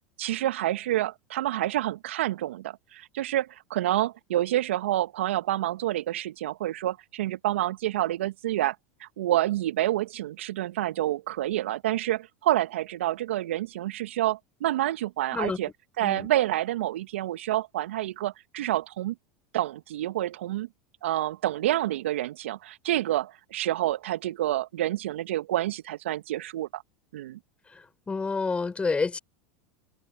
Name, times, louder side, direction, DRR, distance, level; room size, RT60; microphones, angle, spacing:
voice 1, 0.2-8.7 9.0-15.7 16.0-19.1 19.5-20.7 21.0-26.8 27.1-27.4, right 14 dB, 70° right, 1.3 m, -28 dB
voice 2, 27.7-29.2, left 4 dB, 15° left, 4.4 m, -29 dB
hypercardioid pair, 85°, 7 cm